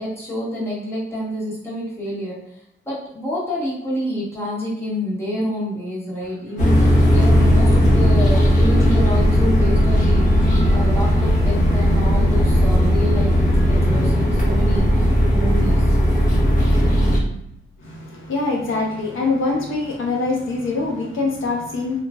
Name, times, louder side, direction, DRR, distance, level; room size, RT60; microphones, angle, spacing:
voice 1, 0.0-2.4 2.8-15.9, equal, 10° left, -7 dB, 1.0 m, -28 dB
sound 1, 6.6-17.2, equal, 40° left, 0.8 m, -16 dB
voice 2, 17.8-22.0, left 3 dB, 75° left, -1 dB, 0.6 m, -24 dB
3.1 x 2.3 x 2.2 m, 0.80 s
wide cardioid pair, 160°, 21 cm